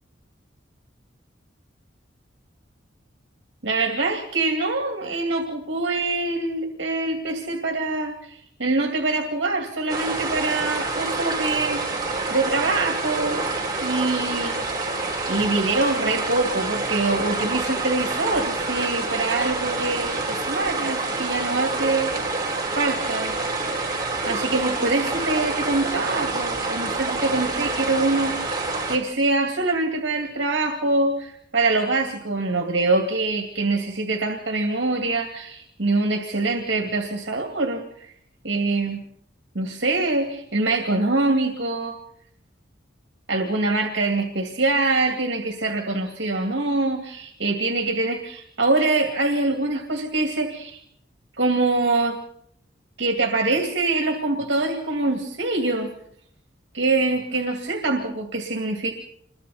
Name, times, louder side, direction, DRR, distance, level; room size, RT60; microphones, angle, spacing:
voice 1, 3.6-11.8 12.3-13.4 13.8-14.6 15.3-22.4 22.8-23.4 24.3-38.1 38.4-39.0 39.5-42.0 43.3-50.8 51.4-52.2 53.0-55.9 56.7-58.9, right 2 dB, 70° right, 4 dB, 2.4 m, -24 dB
sound 1, 9.9-29.0, right 3 dB, 20° right, 3.7 m, -27 dB
27.5 x 22.5 x 4.2 m, 0.68 s
head